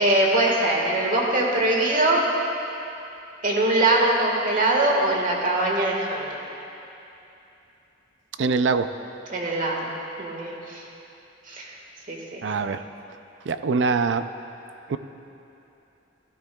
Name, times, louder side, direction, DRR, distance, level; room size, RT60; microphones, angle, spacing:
voice 1, 0.0-2.2 3.4-6.3 9.3-9.9 10.2-10.8 11.5-11.7 12.1-12.4, right 2 dB, 45° right, -1 dB, 1.6 m, -22 dB
voice 2, 8.4-8.9 12.4-12.8 13.5-14.3 14.9-15.0, right 4 dB, 70° right, 11 dB, 0.4 m, -23 dB
16.0 x 12.5 x 2.3 m, 2.8 s
head